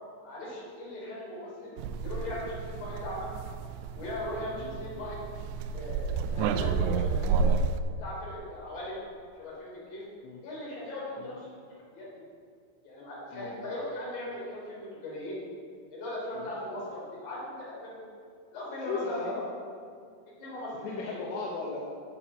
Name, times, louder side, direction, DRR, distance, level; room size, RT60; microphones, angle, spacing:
voice 1, 0.2-3.3 3.9-5.2 5.7-7.5 8.0-9.0 9.4-10.0 10.4-11.5 11.9-12.2 12.8-15.4 15.9-18.0 18.5-19.2 20.4-21.3, left 1 dB, 40° left, -6 dB, 4.0 m, -39 dB
sound 1, 1.8-7.8, right 5 dB, 85° right, 2.9 m, -30 dB
voice 2, 18.8-19.5 20.8-21.9, left 4 dB, 80° left, -2 dB, 3.2 m, -36 dB
9.0 x 7.0 x 7.0 m, 2.3 s
omnidirectional pair, 5.3 m